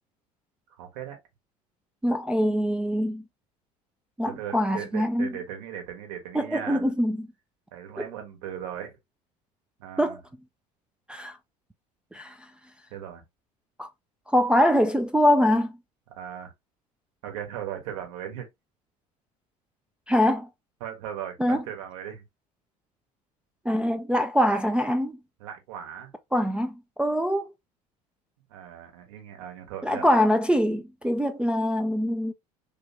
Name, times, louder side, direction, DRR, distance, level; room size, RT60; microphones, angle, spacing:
voice 1, 0.8-1.2 4.2-6.9 7.7-9.0 9.8-10.2 12.9-13.2 16.2-16.5 17.2-18.5 20.8-22.2 25.4-26.1 28.5-30.1, right 9 dB, 60° right, 1.2 m, -38 dB
voice 2, 2.0-3.2 4.2-5.3 6.3-7.3 8.0-8.1 10.0-10.2 11.1-11.4 12.1-12.4 13.8-13.9 14.3-15.7 20.1-20.5 21.4-21.6 23.7-25.2 26.3-27.5 29.8-32.3, equal, 5° right, 0.3 m, -23 dB
3.4 x 2.2 x 2.7 m
figure-of-eight pair, 65°, 20 cm